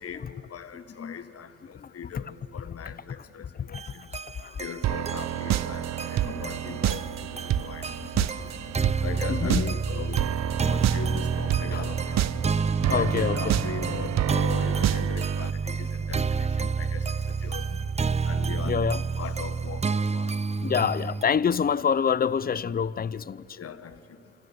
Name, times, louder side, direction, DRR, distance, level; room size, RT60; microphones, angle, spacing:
voice 1, 0.0-4.2 4.6-8.5 9.0-10.3 10.7-12.4 12.9-17.9 18.2-20.3 23.5-24.2, left 7 dB, 50° left, 1.5 m, -40 dB
voice 2, 0.7-1.2 1.7-2.2 2.9-3.0 3.4-4.1 4.4-4.6 6.2-7.0 7.5-8.7 9.3-9.8 11.7-12.2 12.9-13.6 18.6-19.0 20.6-23.6, left 7 dB, 30° left, 0.6 m, -29 dB
sound 1, 3.7-21.2, right 5 dB, 20° right, 0.6 m, -29 dB
Dark Drums, 4.8-15.5, right 13 dB, 60° right, 0.7 m, -29 dB
27.5 x 26.0 x 7.0 m
cardioid pair, 90°, 30 cm